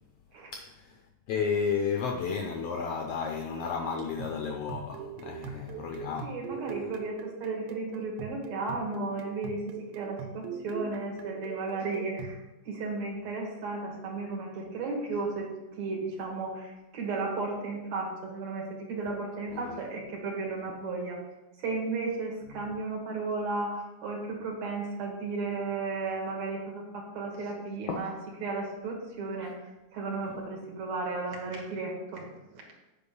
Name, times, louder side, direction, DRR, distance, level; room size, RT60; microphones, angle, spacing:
voice 1, 0.5-6.9 19.5-19.8 22.5-22.6 27.9-28.1 29.4-29.5 30.3-30.4, left 6 dB, 80° left, 1.4 m, -33 dB
sound 1, 3.9-12.4, right 8 dB, 85° right, 2.0 m, -42 dB
voice 2, 6.2-12.4 12.6-15.5 15.8-21.2 21.6-28.1 28.4-29.6 29.9-32.3, right 3 dB, 70° right, 2.8 m, -34 dB
8.4 x 5.3 x 5.3 m
omnidirectional pair, 3.4 m